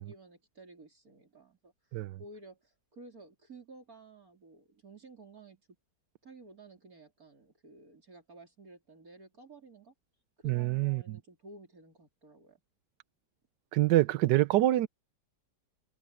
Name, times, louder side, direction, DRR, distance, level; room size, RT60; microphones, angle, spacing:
voice 1, 0.0-5.6 6.2-9.9 10.4-12.6, right 2 dB, 55° right, 4.3 m, -53 dB
voice 2, 10.4-11.2 13.7-14.9, right 15 dB, 85° right, 1.3 m, -26 dB
omnidirectional pair, 1.8 m